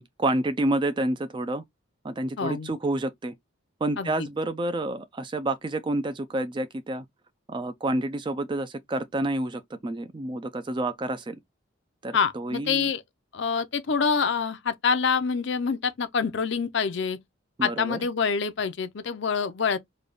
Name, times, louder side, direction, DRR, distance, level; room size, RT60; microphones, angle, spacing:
voice 1, 0.0-1.6 2.0-3.3 3.8-7.1 7.5-11.4 12.0-12.9 17.6-18.0, right 1 dB, 25° right, 0.4 m, -29 dB
voice 2, 2.4-2.7 4.0-4.1 12.1-13.0 13.3-17.2 17.6-19.8, left 5 dB, 60° left, 0.5 m, -26 dB
3.3 x 2.3 x 3.8 m
head